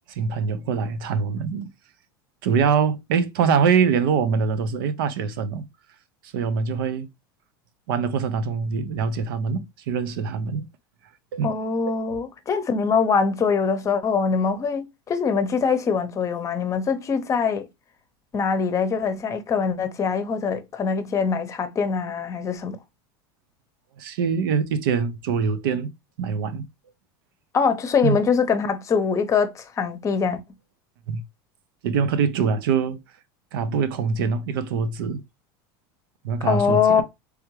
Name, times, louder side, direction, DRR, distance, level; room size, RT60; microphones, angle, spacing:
voice 1, 0.1-1.7 2.4-5.7 6.2-7.1 7.9-10.7 11.3-11.5 11.9-12.0 24.0-25.9 26.2-26.7 28.0-28.2 31.1-31.2 31.8-33.0 33.5-35.2 36.2-37.0, right 6 dB, 80° right, 0.6 m, -24 dB
voice 2, 11.4-17.7 18.3-22.8 27.5-30.4 36.4-37.0, left 5 dB, 25° left, 0.7 m, -23 dB
3.5 x 3.5 x 3.0 m
supercardioid pair, 125°, 12 cm